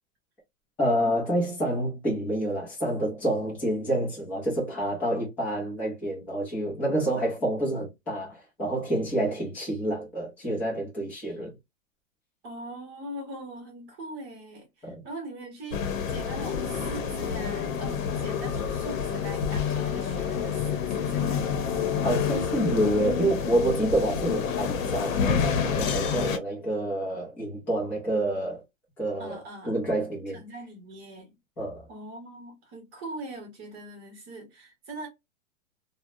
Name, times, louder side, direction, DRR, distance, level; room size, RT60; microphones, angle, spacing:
voice 1, 0.8-11.5 14.8-15.0 22.0-28.6 29.0-29.4 29.6-30.4 31.6-31.9, right 1 dB, 5° left, 0.4 m, -28 dB
voice 2, 12.4-21.4 29.2-29.8 30.3-31.4 31.9-35.1, right 2 dB, 25° right, 0.8 m, -41 dB
sound 1, 15.7-26.4, left 7 dB, 80° left, 0.8 m, -28 dB
2.7 x 2.1 x 2.3 m
supercardioid pair, 160°, 39 cm